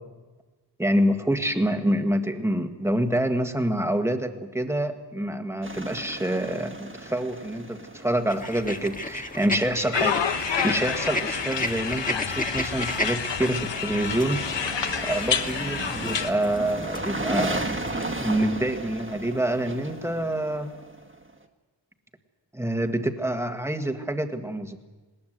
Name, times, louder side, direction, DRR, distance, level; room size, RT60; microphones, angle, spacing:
voice 1, 0.8-14.4 15.1-17.7 18.2-20.7 22.5-24.8, right 1 dB, 5° right, 6 dB, 1.6 m, -26 dB
sound 1, 5.6-9.5 13.6-21.3, right 2 dB, 30° right, 1.8 m, -35 dB
sound 2, 8.3-18.0, left 1 dB, 20° left, 1.6 m, -35 dB
sound 3, 9.9-16.3, left 7 dB, 80° left, 1.3 m, -29 dB
20.5 x 19.0 x 8.0 m, 1.2 s
wide cardioid pair, 110°, 42 cm